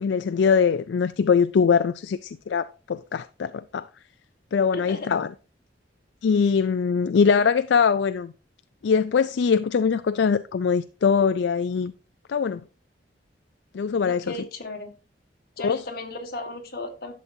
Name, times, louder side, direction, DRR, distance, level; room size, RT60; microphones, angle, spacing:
voice 1, 0.0-3.9 4.5-5.3 6.2-8.3 8.8-11.9 12.3-12.6 13.7-14.3 15.6-15.8, left 6 dB, 75° left, 0.4 m, -22 dB
voice 2, 4.7-5.1 7.0-7.4 14.0-14.9 15.6-17.1, left 2 dB, 55° left, 1.8 m, -36 dB
11.5 x 7.4 x 2.7 m
head